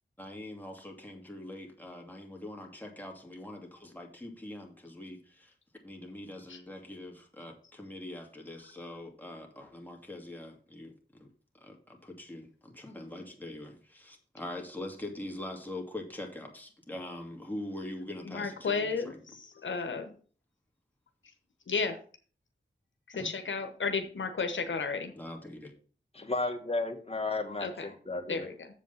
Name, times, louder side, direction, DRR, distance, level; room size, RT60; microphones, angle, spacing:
voice 1, 0.2-5.5 5.8-11.3 11.6-19.2 25.1-25.7, left 1 dB, 10° left, 1 dB, 2.5 m, -43 dB
voice 2, 18.2-20.1 21.7-22.0 23.2-25.1 27.6-27.8 28.3-28.7, left 4 dB, 80° left, 6 dB, 1.0 m, -33 dB
voice 3, 26.1-28.5, left 2 dB, 30° left, 5 dB, 1.8 m, -34 dB
7.4 x 5.2 x 5.7 m, 0.41 s
cardioid pair, 45°, 19 cm